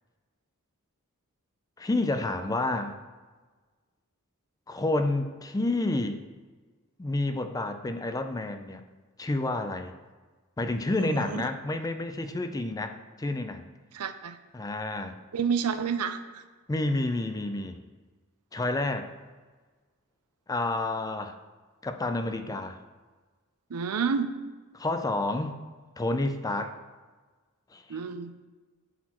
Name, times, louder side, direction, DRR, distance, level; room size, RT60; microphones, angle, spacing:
voice 1, 1.8-3.0 4.7-6.2 7.0-8.8 9.2-9.9 10.6-13.7 14.5-15.2 16.7-17.8 18.5-19.1 20.5-21.4 21.8-22.8 24.7-25.6 26.0-26.8 27.7-28.0, left 2 dB, 15° left, 8 dB, 0.4 m, -29 dB
voice 2, 11.0-11.4 13.9-14.4 15.3-16.4 23.7-24.3 27.9-28.3, right 6 dB, 80° right, 10 dB, 0.5 m, -29 dB
11.5 x 4.1 x 3.0 m, 1.4 s
head